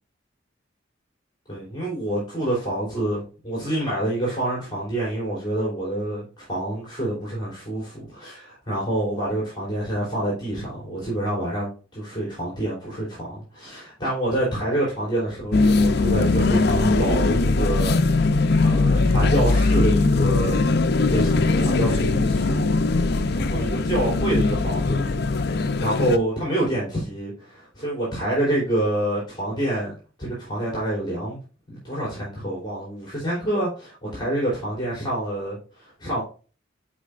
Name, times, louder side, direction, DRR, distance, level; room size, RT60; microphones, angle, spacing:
voice 1, 1.5-18.4 18.6-22.8 23.3-31.4 31.7-36.2, right 1 dB, 25° left, 3.3 m, -27 dB
sound 1, 15.5-26.2, left 3 dB, 55° left, 0.6 m, -20 dB
9.8 x 4.6 x 2.5 m
head